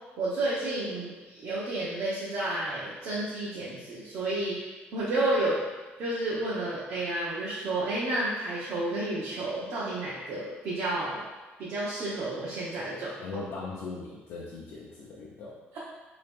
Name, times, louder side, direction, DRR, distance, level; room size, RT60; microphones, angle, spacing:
voice 1, 0.2-5.6 6.0-11.2 11.6-13.2 15.7-15.8, right 2 dB, 65° right, -7 dB, 0.7 m, -31 dB
voice 2, 13.2-15.5, left 3 dB, 65° left, -5 dB, 0.6 m, -39 dB
2.9 x 2.9 x 3.4 m, 1.3 s
cardioid pair, 160°, 4 cm